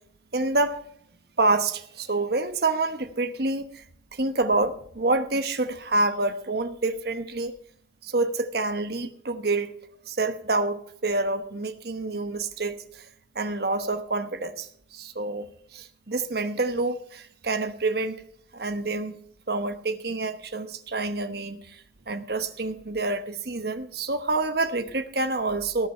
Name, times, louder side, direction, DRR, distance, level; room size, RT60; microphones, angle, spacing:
voice 1, 0.3-0.8 1.4-3.8 4.1-7.5 8.0-9.7 10.1-13.0 13.3-15.5 15.7-18.2 18.5-19.2 19.5-21.8 22.1-25.9, right 2 dB, 60° right, 1.1 m, -27 dB
18.5 x 7.5 x 5.7 m
head